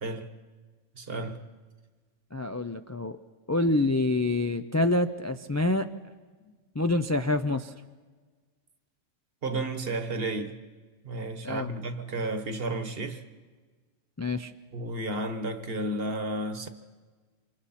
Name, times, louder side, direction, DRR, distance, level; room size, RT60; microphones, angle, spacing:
voice 1, 0.0-0.3 1.0-1.5 6.4-6.5 9.4-10.6 11.0-13.2 14.7-16.7, right 2 dB, 50° right, 1.5 m, -32 dB
voice 2, 2.3-3.2 3.5-5.9 6.7-7.7 11.4-11.7 14.2-14.5, left 2 dB, 25° left, 0.3 m, -26 dB
28.5 x 25.5 x 4.3 m
omnidirectional pair, 1.3 m